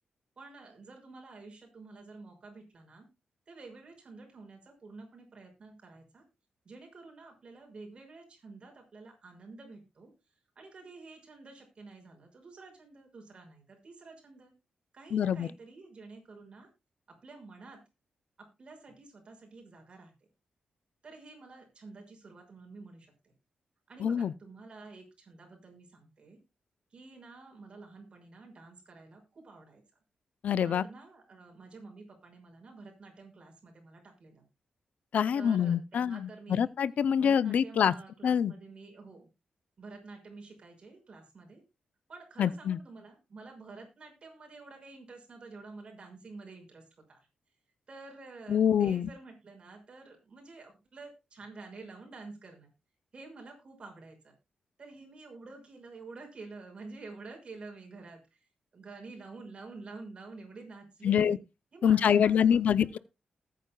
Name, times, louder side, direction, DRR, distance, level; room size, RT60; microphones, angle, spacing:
voice 1, 0.4-3.1 3.5-6.2 6.6-10.1 10.6-14.5 14.9-16.7 17.1-17.8 18.4-20.1 21.0-23.3 23.9-26.4 26.9-29.8 30.6-34.4 35.3-36.7 37.2-39.3 39.8-41.6 42.1-47.3 47.9-52.7 53.1-54.3 54.8-61.4 61.7-63.0, right 3 dB, 40° right, 5.9 m, -49 dB
voice 2, 15.1-15.5 24.0-24.3 30.4-30.8 35.1-37.9 38.2-38.5 42.4-42.8 48.5-49.1 61.0-61.4 61.8-63.0, left 8 dB, 70° left, 0.5 m, -25 dB
20.0 x 9.3 x 2.3 m
wide cardioid pair, 130°, 3 cm